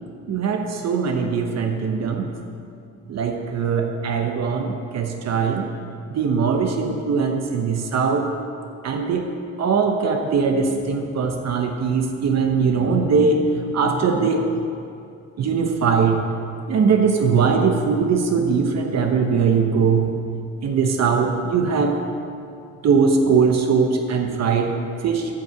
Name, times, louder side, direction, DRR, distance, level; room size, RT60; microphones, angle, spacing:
voice 1, 0.3-2.3 3.1-5.7 6.1-8.3 8.8-9.3 9.6-14.5 15.4-16.2 16.7-20.2 20.6-22.1 22.8-25.4, right 5 dB, 60° right, 4 dB, 0.9 m, -21 dB
8.6 x 5.7 x 7.7 m, 2.5 s
cardioid pair, 90°, 30 cm